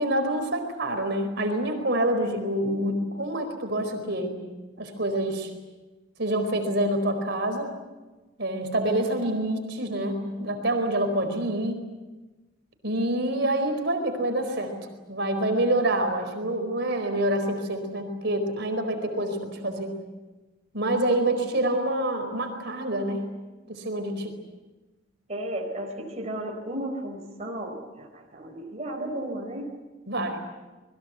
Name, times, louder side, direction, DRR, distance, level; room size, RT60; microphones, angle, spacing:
voice 1, 0.0-4.4 4.8-5.5 6.2-7.7 8.4-11.8 12.8-19.9 20.7-23.2 23.7-24.3 30.1-30.4, right 1 dB, 55° right, 6 dB, 4.6 m, -27 dB
voice 2, 25.3-29.7, right 1 dB, 35° right, 1 dB, 4.2 m, -34 dB
28.5 x 22.0 x 8.1 m, 1.2 s
head